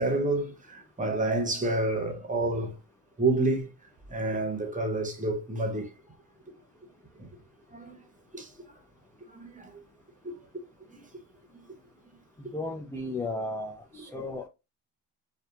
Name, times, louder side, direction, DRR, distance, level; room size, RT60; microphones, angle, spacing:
voice 1, 0.0-2.8 3.2-3.7 4.1-5.9 7.2-7.3 7.7-8.0 8.3-8.5 9.3-9.7 10.2-10.3 10.9-11.0, right 2 dB, 20° right, 0.8 m, -29 dB
voice 2, 12.4-14.5, left 2 dB, 5° left, 0.3 m, -35 dB
2.7 x 2.3 x 2.3 m
cardioid pair, 75°, 43 cm